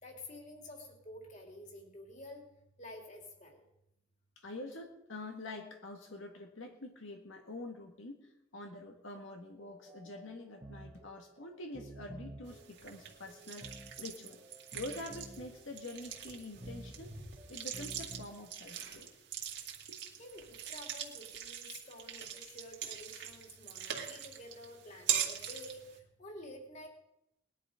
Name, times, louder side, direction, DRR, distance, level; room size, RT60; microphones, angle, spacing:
voice 1, 0.0-2.5 2.8-3.7 20.2-26.9, left 1 dB, 35° left, 1 dB, 3.1 m, -50 dB
voice 2, 4.4-14.4 14.7-17.1 17.5-19.1 19.9-20.0, left 2 dB, 80° left, 3 dB, 1.9 m, -46 dB
sound 1, 9.6-18.3, right 1 dB, 25° right, 1.1 m, -52 dB
sound 2, 12.5-26.0, right 9 dB, 60° right, 2.1 m, -42 dB
20.0 x 11.5 x 5.1 m, 0.82 s
head